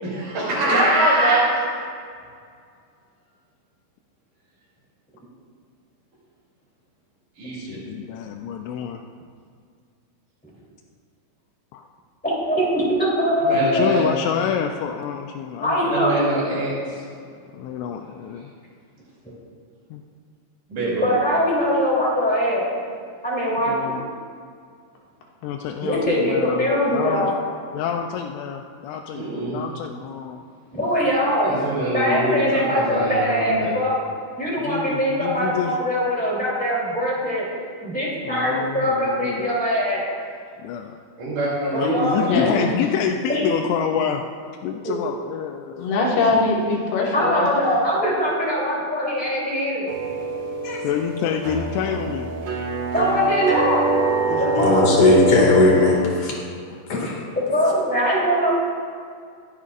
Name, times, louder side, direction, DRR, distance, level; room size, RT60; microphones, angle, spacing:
voice 1, 0.0-1.4 7.4-7.8 13.4-14.0 15.9-17.0 20.7-21.1 29.1-29.6 31.4-33.7 41.2-42.4, right 1 dB, 45° right, -10 dB, 3.9 m, -24 dB
voice 2, 0.7-1.4 12.2-13.9 15.6-16.2 20.9-22.7 23.2-24.0 25.8-27.3 30.7-31.5 31.9-34.0 34.4-37.4 37.8-40.0 41.7-42.2 43.3-43.4 44.8-45.0 47.1-49.9 52.9-53.9 54.4-54.9 57.5-58.5, equal, 5° left, -6 dB, 1.8 m, -22 dB
voice 3, 7.5-9.0 11.7-11.9 13.5-16.6 17.5-18.5 19.9-20.0 23.7-24.1 25.4-27.4 27.7-30.4 34.6-35.8 38.2-39.6 40.6-41.0 41.7-44.2 44.6-46.0 50.8-52.3 54.2-55.0 56.7-56.8, left 8 dB, 85° left, 3 dB, 2.8 m, -28 dB
voice 4, 42.1-42.7 45.8-47.5, left 3 dB, 70° left, -3 dB, 3.5 m, -21 dB
sound 1, 49.9-56.0, right 3 dB, 65° right, 2.2 m, -24 dB
voice 5, 54.6-56.3 56.9-57.2, left 2 dB, 45° left, -2 dB, 2.1 m, -17 dB
24.5 x 8.3 x 2.5 m, 2.2 s
omnidirectional pair, 5.2 m